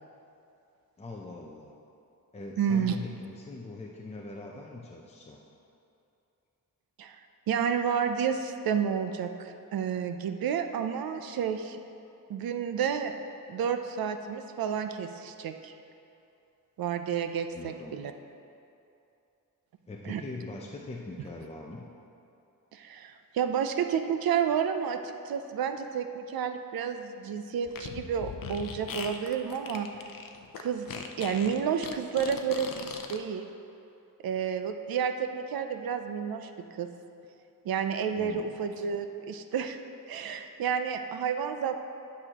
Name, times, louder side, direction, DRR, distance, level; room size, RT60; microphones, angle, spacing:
voice 1, 1.0-1.8 2.3-5.4 17.5-18.0 19.9-21.9 38.2-38.5, left 2 dB, 20° left, -2 dB, 0.5 m, -42 dB
voice 2, 2.6-3.0 7.0-7.2 7.5-11.8 12.3-13.1 13.5-15.7 16.8-18.1 20.1-20.2 22.7-29.9 30.6-33.5 34.2-36.9 37.6-39.8 40.1-41.8, right 7 dB, 90° right, 7 dB, 0.5 m, -30 dB
Fart, 27.7-33.2, left 6 dB, 70° left, 0.6 m, -40 dB
11.0 x 6.3 x 2.9 m, 2.8 s
wide cardioid pair, 125°, 35 cm